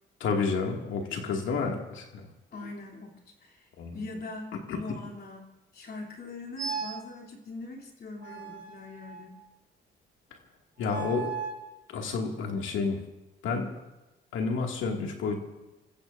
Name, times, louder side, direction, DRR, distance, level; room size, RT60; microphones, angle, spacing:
voice 1, 0.2-2.3 3.8-4.0 4.7-4.8 10.8-11.4 11.9-13.0 13.4-13.8 14.3-15.4, left 4 dB, 80° left, 2 dB, 2.2 m, -30 dB
voice 2, 1.0-1.5 2.5-5.5 5.7-9.4, left 2 dB, 55° left, 0 dB, 3.1 m, -42 dB
sound 1, 6.6-7.1 8.2-9.5 10.8-11.7, right 6 dB, 40° right, 2.3 m, -37 dB
29.5 x 15.0 x 2.6 m, 1.0 s
cardioid pair, 90°, 20 cm